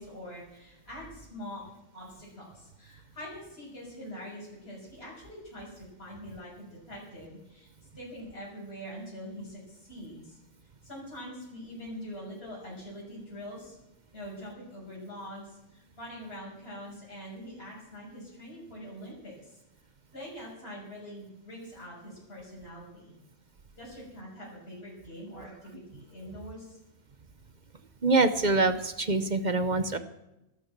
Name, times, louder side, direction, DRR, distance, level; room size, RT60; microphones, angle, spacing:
voice 1, 0.0-1.6 1.9-7.7 7.9-10.4 10.8-13.8 14.1-19.6 20.1-23.1 23.8-26.8, equal, 45° left, -5 dB, 6.7 m, -44 dB
voice 2, 28.0-30.0, right 3 dB, 35° right, 11 dB, 0.9 m, -25 dB
13.0 x 12.5 x 7.3 m, 0.91 s
omnidirectional pair, 1.5 m